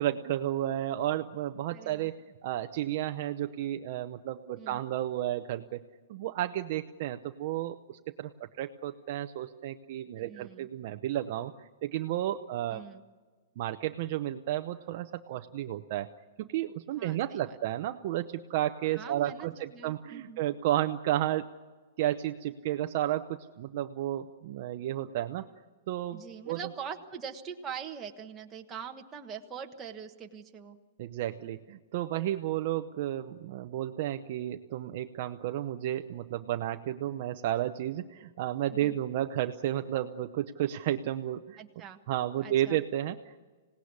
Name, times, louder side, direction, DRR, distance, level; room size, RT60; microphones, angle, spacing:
voice 1, 0.0-2.2 2.4-5.8 6.1-8.3 8.6-11.5 11.8-12.8 13.6-16.1 16.4-21.5 22.0-25.5 25.9-26.2 26.5-26.6 31.0-41.6 42.1-43.4, right 13 dB, 35° right, 7 dB, 0.7 m, -32 dB
voice 2, 1.7-2.1 4.6-4.8 10.1-10.7 12.7-13.0 17.0-17.6 18.9-20.4 26.1-30.8 38.8-39.0 41.6-42.0 42.4-42.8, right 7 dB, 10° right, 2 dB, 1.3 m, -43 dB
26.5 x 18.5 x 9.7 m, 1.4 s
hypercardioid pair, 175°, 0 cm